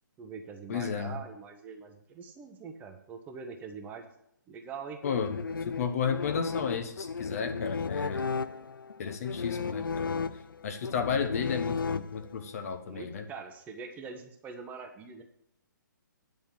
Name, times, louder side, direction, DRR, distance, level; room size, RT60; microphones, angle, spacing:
voice 1, 0.2-4.0 4.5-5.0 5.5-5.6 12.8-15.2, right 5 dB, 15° right, 4 dB, 0.8 m, -43 dB
voice 2, 0.7-1.2 5.0-8.3 9.0-10.3 10.6-13.2, left 6 dB, 45° left, 7 dB, 0.9 m, -33 dB
Orchestra (Double Bass Vibrato), 5.0-12.5, left 5 dB, 80° left, 0.4 m, -34 dB
9.4 x 4.3 x 7.3 m, 0.75 s
figure-of-eight pair, 135°, 11 cm